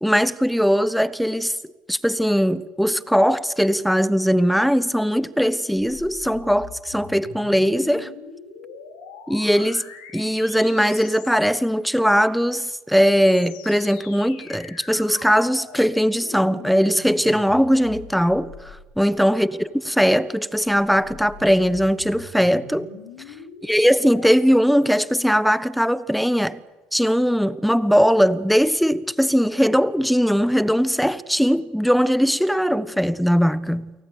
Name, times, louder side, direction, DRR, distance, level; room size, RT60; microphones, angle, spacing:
voice 1, 0.0-1.6 1.9-8.1 9.3-22.9 23.6-26.6 26.9-33.9, equal, ahead, 1.2 m, -20 dB
sound 1, 5.7-11.9 12.7-19.3 20.4-24.3, left 6 dB, 75° left, 5.3 m, -43 dB
28.5 x 18.5 x 8.4 m
hypercardioid pair, 60°, 4 cm